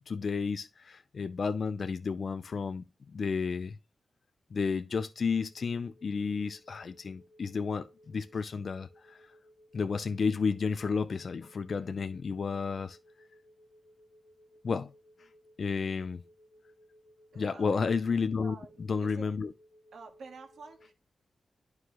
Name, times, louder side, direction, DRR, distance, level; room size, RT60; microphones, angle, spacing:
voice 1, 0.1-3.8 4.5-9.3 9.7-13.0 14.6-14.9 15.2-15.3 15.6-16.2 17.4-18.6 18.9-19.5, left 5 dB, 50° left, 0.4 m, -32 dB
sound 1, 5.5-20.9, equal, 10° left, 3.8 m, -61 dB
voice 2, 17.3-17.7 18.4-19.3 19.9-20.9, right 4 dB, 80° right, 1.6 m, -49 dB
11.0 x 4.7 x 3.0 m
wide cardioid pair, 165°, 0 cm